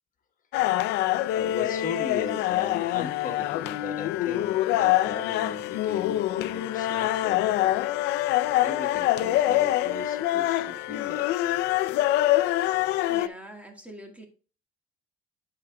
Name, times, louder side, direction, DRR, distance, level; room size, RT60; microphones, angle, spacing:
sound 1, 0.5-13.3, left 14 dB, 85° left, 0.5 m, -25 dB
voice 1, 1.3-11.3, left 5 dB, 50° left, 4 dB, 1.3 m, -37 dB
voice 2, 13.1-14.2, right 1 dB, 10° right, 3 dB, 1.7 m, -44 dB
12.0 x 4.8 x 2.3 m, 0.35 s
cardioid pair, 110°, 17 cm